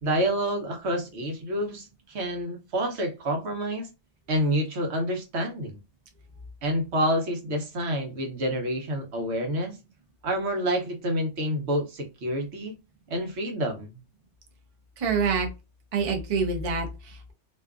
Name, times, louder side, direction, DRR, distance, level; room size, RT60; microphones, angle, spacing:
voice 1, 0.0-3.9 4.3-5.8 6.6-9.8 10.2-12.7 13.1-14.0, equal, 70° right, 3 dB, 1.0 m, -28 dB
voice 2, 15.0-15.5 15.9-17.3, right 5 dB, 40° right, 2 dB, 0.5 m, -26 dB
2.6 x 2.3 x 2.3 m, 0.27 s
omnidirectional pair, 1.2 m